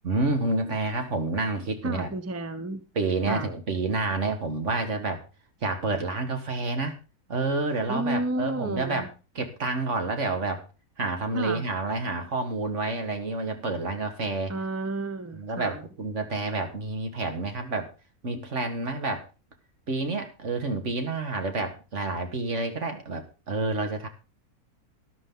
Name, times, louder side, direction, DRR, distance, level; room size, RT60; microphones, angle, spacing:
voice 1, 0.0-2.1 3.0-5.2 5.6-6.9 7.3-9.1 9.4-10.6 11.0-14.5 15.3-17.9 18.2-19.2 19.9-24.1, right 3 dB, 50° right, 6 dB, 2.1 m, -29 dB
voice 2, 1.8-2.8 3.3-3.5 7.9-9.1 11.3-11.6 14.5-15.9, right 2 dB, 15° right, 10 dB, 0.7 m, -31 dB
13.0 x 11.0 x 3.9 m, 0.32 s
omnidirectional pair, 1.6 m